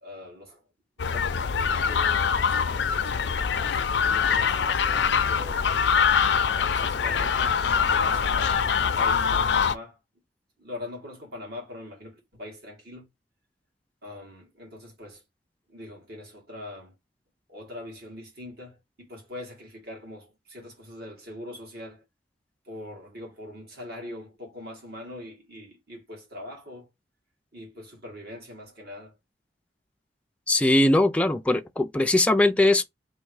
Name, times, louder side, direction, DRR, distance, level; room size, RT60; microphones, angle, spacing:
voice 1, 0.0-0.6 1.1-3.4 3.7-5.7 6.4-8.6 9.0-10.0 10.6-13.1 14.0-15.2 15.7-16.9 17.5-22.0 22.7-26.9 27.5-29.2, left 1 dB, 60° right, 2.0 m, -42 dB
sound 1, 1.0-9.8, left 6 dB, 85° left, 0.5 m, -24 dB
voice 2, 30.5-32.8, left 1 dB, 5° left, 0.3 m, -20 dB
3.5 x 2.6 x 4.6 m
head